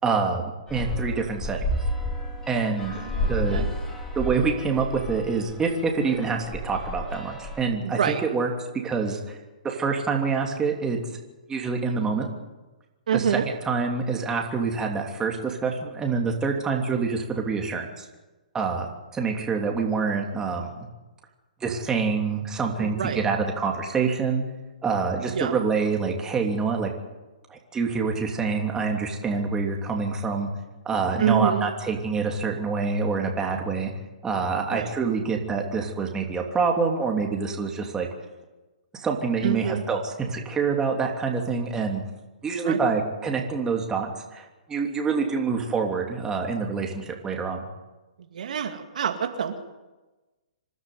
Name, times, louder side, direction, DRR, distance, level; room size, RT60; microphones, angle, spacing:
voice 1, 0.0-0.4 0.7-1.6 2.5-3.0 3.3-3.6 4.1-8.5 8.8-9.4 9.6-11.0 11.5-12.3 13.1-18.0 18.5-20.7 21.6-24.4 24.8-26.9 27.5-30.5 30.8-33.9 34.2-38.1 39.0-42.0 42.4-47.6, right 5 dB, 15° right, 1 dB, 3.1 m, -26 dB
sound 1, 0.7-7.6, left 1 dB, 15° left, 4.6 m, -31 dB
voice 2, 3.0-3.6 7.8-8.2 13.1-13.5 22.8-23.3 25.3-25.5 31.2-31.6 34.7-34.9 39.4-39.8 42.6-42.8 48.3-49.6, right 8 dB, 65° right, 5 dB, 2.3 m, -26 dB
25.5 x 12.0 x 9.5 m, 1.2 s
hypercardioid pair, 135°, 4 cm